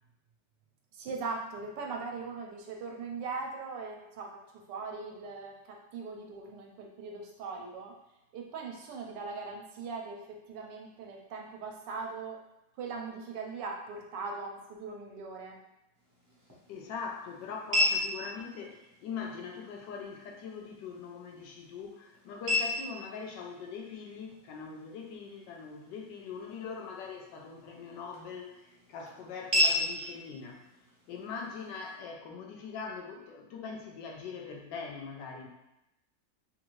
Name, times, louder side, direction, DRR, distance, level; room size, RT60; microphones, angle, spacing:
voice 1, 0.9-4.4 4.7-7.9 8.3-12.4 12.8-15.6, right 4 dB, 85° right, 1 dB, 1.2 m, -40 dB
sound 1, 16.0-32.0, left 1 dB, 25° right, 0.4 m, -36 dB
voice 2, 16.7-30.6 31.1-35.5, left 5 dB, 90° left, 1 dB, 1.3 m, -42 dB
3.7 x 2.5 x 3.0 m, 0.90 s
omnidirectional pair, 1.9 m